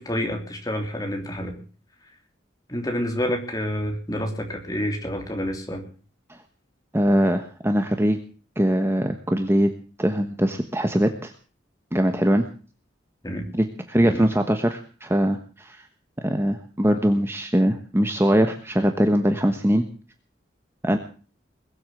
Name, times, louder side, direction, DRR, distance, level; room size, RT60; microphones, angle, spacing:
voice 1, 0.0-1.6 2.7-5.8 13.2-13.5 14.0-14.3, equal, 20° left, 3 dB, 3.2 m, -28 dB
voice 2, 6.9-8.2 8.6-9.7 10.0-11.3 11.9-12.5 13.5-15.9 16.2-19.8 20.8-21.0, equal, 15° right, 6 dB, 1.2 m, -22 dB
21.5 x 8.2 x 7.7 m, 0.40 s
head